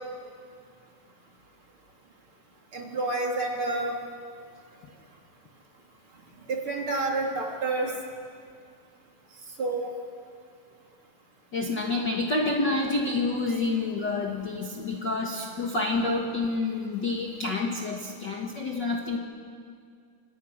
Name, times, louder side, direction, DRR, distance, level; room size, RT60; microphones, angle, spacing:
voice 1, 2.7-4.0 6.5-7.9 9.6-9.9, right 2 dB, 40° right, 0 dB, 3.6 m, -28 dB
voice 2, 11.5-19.2, left 3 dB, 40° left, -1 dB, 1.8 m, -28 dB
28.0 x 26.5 x 6.6 m, 2.2 s
omnidirectional pair, 3.9 m